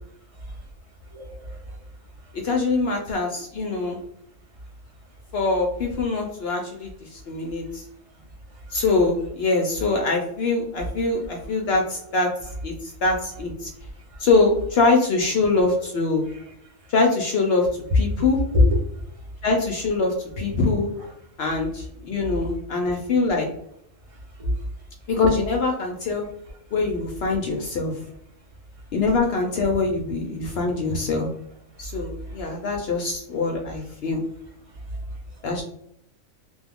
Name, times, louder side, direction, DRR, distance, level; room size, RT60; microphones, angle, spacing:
voice 1, 1.1-1.8 8.7-8.8 14.1-14.2 16.3-16.4 18.5-18.8 24.1-24.6 32.3-32.4 34.9-35.0, left 2 dB, 30° right, -1 dB, 0.7 m, -24 dB
voice 2, 2.3-4.0 5.3-7.8 8.7-12.3 12.6-13.7 14.2-16.2 16.9-17.7 17.9-18.4 19.4-20.9 21.4-23.5 25.1-26.3 26.7-27.9 28.9-31.3 31.8-34.2 35.4-35.6, left 3 dB, 65° left, 2 dB, 0.7 m, -23 dB
2.9 x 2.3 x 3.4 m, 0.74 s
omnidirectional pair, 1.4 m